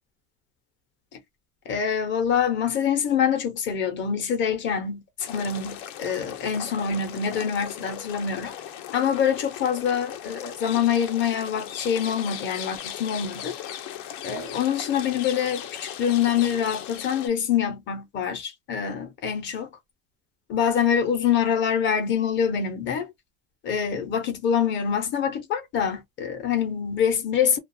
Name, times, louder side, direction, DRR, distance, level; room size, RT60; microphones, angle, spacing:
voice 1, 1.7-8.5 8.9-13.6 14.2-19.7 20.5-23.1 23.6-27.6, left 8 dB, 35° left, 0.8 m, -25 dB
sound 1, 5.2-17.3, left 10 dB, 65° left, 0.7 m, -38 dB
2.4 x 2.3 x 2.6 m
cardioid pair, 165°, 34 cm